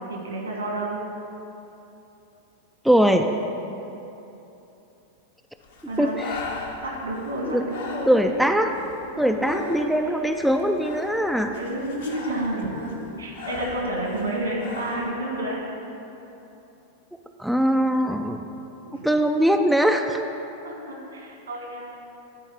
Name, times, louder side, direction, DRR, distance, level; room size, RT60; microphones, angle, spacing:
voice 1, 0.1-1.0 5.9-6.2 6.6-8.3 9.2-9.8 11.1-11.2 11.5-15.6 18.8-19.3 20.6-21.9, right 1 dB, 75° right, -2 dB, 2.1 m, -30 dB
voice 2, 2.8-3.3 6.0-6.4 7.5-7.6 8.1-8.7 9.2-11.6 17.4-18.5 19.0-20.2, equal, ahead, 4 dB, 0.4 m, -21 dB
Breathing, 5.6-15.1, left 4 dB, 60° left, 1.1 m, -40 dB
11.0 x 4.5 x 7.2 m, 2.9 s
figure-of-eight pair, 90°, 0 cm